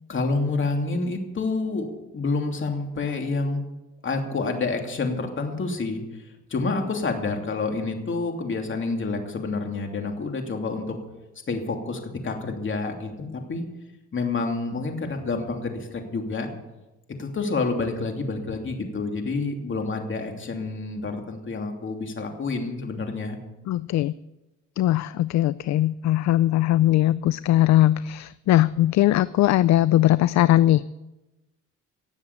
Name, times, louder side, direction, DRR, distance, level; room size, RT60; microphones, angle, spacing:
voice 1, 0.1-1.9 2.1-3.6 4.0-11.0 11.5-13.6 14.1-16.5 17.2-23.4, left 3 dB, 40° left, 3 dB, 2.9 m, -28 dB
voice 2, 23.7-24.1 24.8-30.9, left 14 dB, 65° left, 17 dB, 0.4 m, -20 dB
18.0 x 7.3 x 8.1 m, 1.0 s
cardioid pair, 90°, 30 cm